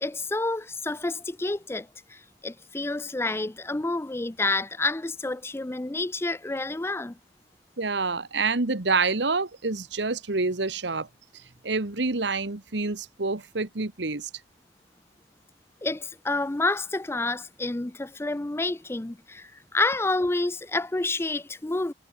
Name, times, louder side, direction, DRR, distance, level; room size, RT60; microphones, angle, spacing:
voice 1, 0.0-7.2 15.8-21.9, left 2 dB, 15° left, 0.5 m, -29 dB
voice 2, 7.8-11.1 11.6-14.3, right 3 dB, 70° right, 1.4 m, -27 dB
head